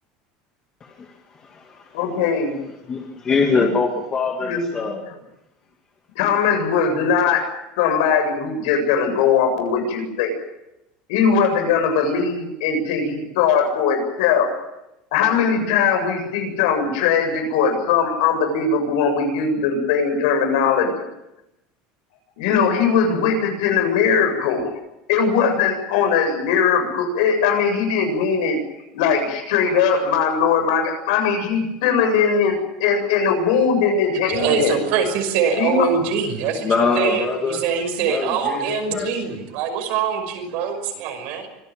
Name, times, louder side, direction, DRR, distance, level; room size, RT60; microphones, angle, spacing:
voice 1, 0.8-1.1 1.4-2.0 2.9-5.0 36.6-37.6 38.0-39.1, left 4 dB, 20° left, 1 dB, 2.4 m, -23 dB
voice 2, 1.9-2.6 3.5-3.7 4.4-4.6 6.2-7.4 7.8-10.3 11.1-14.5 15.1-20.9 22.4-24.7 25.1-28.6 28.9-34.8 35.6-35.9, left 6 dB, 80° left, 6 dB, 7.7 m, -20 dB
voice 3, 34.2-41.5, right 6 dB, 55° right, 5 dB, 5.9 m, -23 dB
25.5 x 17.0 x 9.2 m, 0.88 s
cardioid pair, 180°, 3 cm